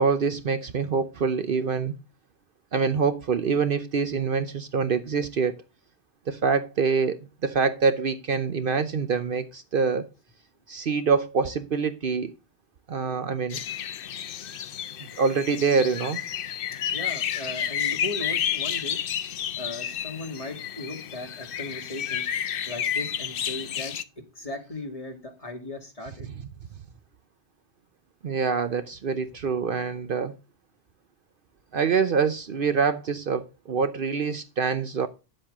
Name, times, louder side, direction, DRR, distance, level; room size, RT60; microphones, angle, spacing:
voice 1, 0.0-1.9 2.7-5.6 6.3-10.0 10.7-12.3 12.9-13.6 15.2-16.2 28.2-30.4 31.7-35.1, right 5 dB, 55° right, 0.9 m, -25 dB
sound 1, 13.5-24.0, left 9 dB, 60° left, 0.7 m, -31 dB
voice 2, 16.9-19.0 19.6-22.3 22.7-26.3, left 2 dB, 30° left, 2.1 m, -37 dB
10.5 x 7.7 x 3.5 m
omnidirectional pair, 1.1 m